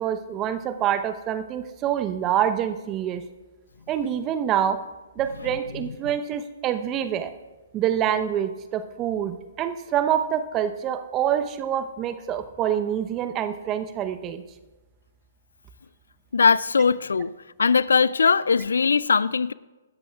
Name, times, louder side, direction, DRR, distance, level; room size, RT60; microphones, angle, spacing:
voice 1, 0.0-3.2 3.9-4.8 5.2-7.3 7.7-14.4, right 10 dB, 25° right, 10 dB, 0.9 m, -26 dB
voice 2, 16.3-17.3 17.6-19.5, left 5 dB, 70° left, 20 dB, 0.3 m, -20 dB
25.5 x 13.5 x 2.4 m, 1.2 s
figure-of-eight pair, 125°, 0 cm